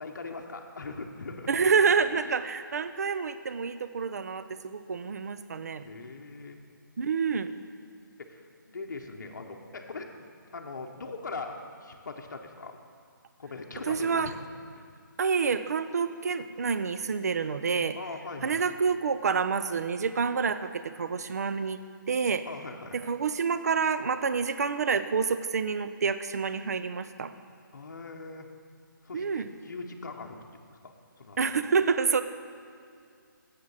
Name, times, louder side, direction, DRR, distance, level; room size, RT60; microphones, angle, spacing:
voice 1, 0.0-1.7 2.1-2.2 5.8-6.6 8.2-10.2 10.5-12.8 13.4-14.3 14.8-14.9 17.9-18.6 22.4-23.0 27.7-28.5 29.0-30.4 30.7-31.4, left 3 dB, 55° left, 2 dB, 0.8 m, -41 dB
voice 2, 1.5-5.9 7.0-7.5 13.9-14.3 15.2-18.0 18.4-21.8 22.1-22.5 22.9-27.3 29.1-29.5 31.4-32.2, right 5 dB, 50° right, 11 dB, 0.4 m, -28 dB
7.5 x 6.3 x 7.2 m, 2.3 s
hypercardioid pair, 170°, 11 cm